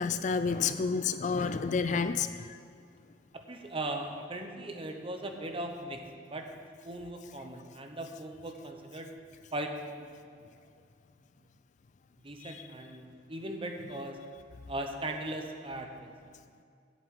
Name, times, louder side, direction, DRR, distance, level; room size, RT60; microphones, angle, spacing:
voice 1, 0.0-2.6 12.4-12.6, left 5 dB, 40° left, 11 dB, 0.3 m, -30 dB
voice 2, 3.5-6.5 6.8-9.1 9.5-10.1 12.2-14.2 14.7-16.1, right 1 dB, 30° right, 4 dB, 1.0 m, -38 dB
8.4 x 8.0 x 7.9 m, 2.3 s
head